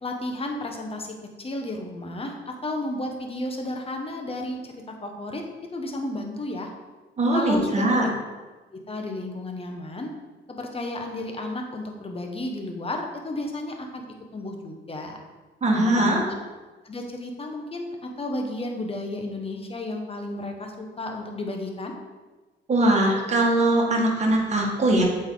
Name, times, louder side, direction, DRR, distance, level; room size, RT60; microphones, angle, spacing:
voice 1, 0.0-5.4 5.7-6.7 7.3-8.1 8.7-10.1 10.5-14.0 14.3-15.2 15.7-16.2 16.8-21.9, left 1 dB, 30° left, 3 dB, 1.2 m, -32 dB
voice 2, 7.2-8.1 15.6-16.2 22.7-25.0, right 1 dB, 35° right, -1 dB, 1.8 m, -21 dB
7.9 x 4.5 x 3.9 m, 1.3 s
cardioid pair, 90°, 20 cm